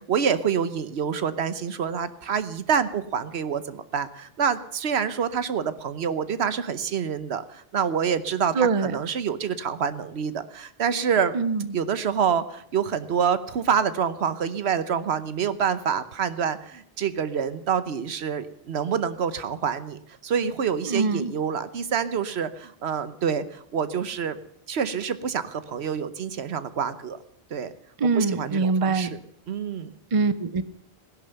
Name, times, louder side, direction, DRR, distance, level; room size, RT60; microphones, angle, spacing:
voice 1, 0.1-11.3 11.7-24.4 24.7-27.2 27.5-27.7 28.2-29.2 29.5-29.9, right 7 dB, 80° right, 13 dB, 1.1 m, -27 dB
voice 2, 8.5-9.0 11.3-11.7 20.9-21.3 28.0-29.1 30.1-30.6, right 4 dB, 35° right, 14 dB, 0.7 m, -23 dB
16.0 x 11.0 x 6.9 m, 0.68 s
omnidirectional pair, 1.1 m